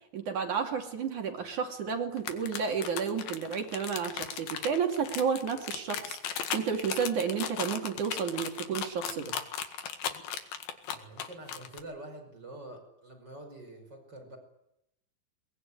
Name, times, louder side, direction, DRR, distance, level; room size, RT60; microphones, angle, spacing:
voice 1, 0.1-9.4, right 6 dB, 60° right, 4 dB, 3.8 m, -31 dB
sound 1, 2.2-11.8, left 8 dB, 80° left, 3.7 m, -36 dB
voice 2, 10.9-14.4, right 1 dB, 30° right, 3 dB, 6.1 m, -46 dB
22.5 x 21.5 x 9.8 m, 0.81 s
omnidirectional pair, 4.2 m